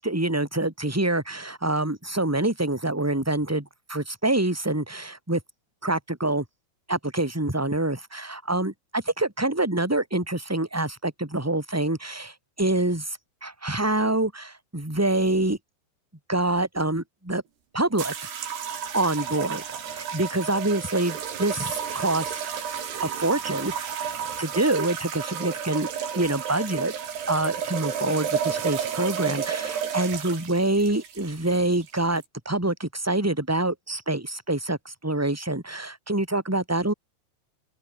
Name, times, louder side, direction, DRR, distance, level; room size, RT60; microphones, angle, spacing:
voice 1, 0.0-5.4 5.8-6.4 6.9-15.6 16.3-17.4 17.7-18.1 18.9-19.6 19.9-22.4 23.0-23.9 24.4-26.9 27.3-36.9, right 2 dB, 5° right, 3.2 m, -26 dB
sound 1, 18.0-32.2, right 8 dB, 60° right, 5.2 m, -32 dB
open air
omnidirectional pair, 5.7 m